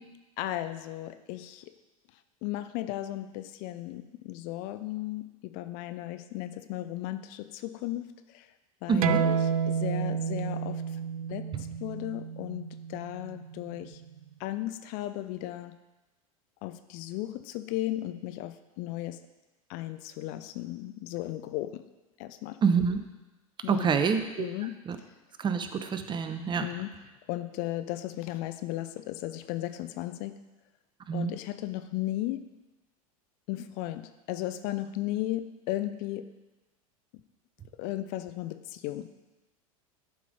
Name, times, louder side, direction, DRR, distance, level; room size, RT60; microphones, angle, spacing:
voice 1, 0.4-1.7 2.4-8.5 8.8-10.8 11.3-14.0 14.4-15.8 16.6-19.2 19.7-21.8 22.2-22.6 23.6-23.9 24.4-24.8 26.6-27.0 27.3-30.4 31.1-32.5 33.5-36.3 37.1-37.2 37.8-39.1, left 15 dB, 50° left, 11 dB, 0.6 m, -35 dB
voice 2, 8.9-9.2 11.5-11.6 22.6-23.0 23.7-24.4 24.9-25.0 25.4-26.6 31.1-31.3, right 6 dB, 25° right, 8 dB, 0.8 m, -26 dB
sound 1, 9.0-14.2, right 7 dB, 80° right, 0.4 m, -31 dB
11.0 x 5.2 x 5.2 m, 1.1 s
hypercardioid pair, 85°, 18 cm